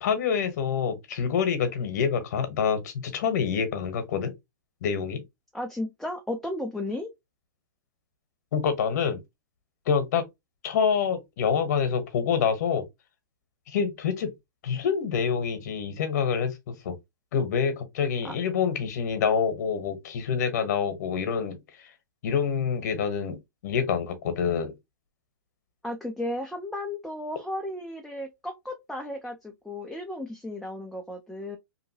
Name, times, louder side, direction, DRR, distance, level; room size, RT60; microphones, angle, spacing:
voice 1, 0.0-4.3 4.8-5.2 8.5-9.2 9.9-10.3 10.6-12.8 13.7-14.3 14.6-16.9 17.3-21.6 22.2-24.7, left 6 dB, 55° left, 1.0 m, -26 dB
voice 2, 5.5-7.1 18.2-18.4 25.8-31.6, left 1 dB, ahead, 0.4 m, -34 dB
2.9 x 2.5 x 2.7 m
hypercardioid pair, 135°, 11 cm